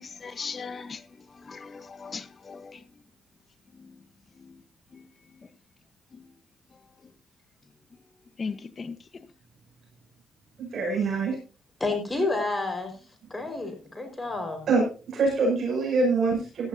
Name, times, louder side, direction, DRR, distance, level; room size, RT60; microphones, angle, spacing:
voice 1, 0.0-2.8 3.7-4.0 4.3-4.6 4.9-5.5 6.1-6.3 7.0-7.1 8.4-9.3, left 5 dB, 40° left, 1.1 m, -39 dB
voice 2, 10.6-11.3 14.7-16.7, right 3 dB, 60° right, 6.7 m, -25 dB
voice 3, 11.8-13.0 13.3-14.7, left 2 dB, 15° left, 5.0 m, -29 dB
16.0 x 12.0 x 2.8 m
cardioid pair, 90°, 0 cm